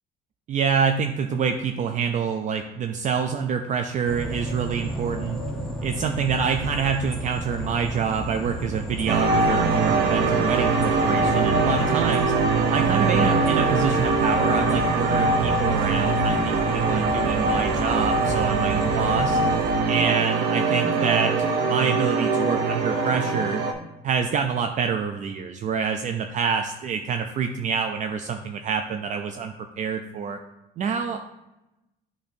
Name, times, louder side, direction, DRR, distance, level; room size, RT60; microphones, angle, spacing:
voice 1, 0.5-5.4 5.8-12.3 12.7-19.4 19.8-23.6 24.0-30.4 30.8-31.2, right 6 dB, 45° right, 6 dB, 0.4 m, -26 dB
sound 1, 4.1-19.7, equal, 5° left, 0.9 m, -33 dB
sound 2, 9.1-23.7, right 3 dB, 80° right, 0.8 m, -22 dB
8.3 x 2.8 x 4.3 m, 0.94 s
cardioid pair, 110°, 17 cm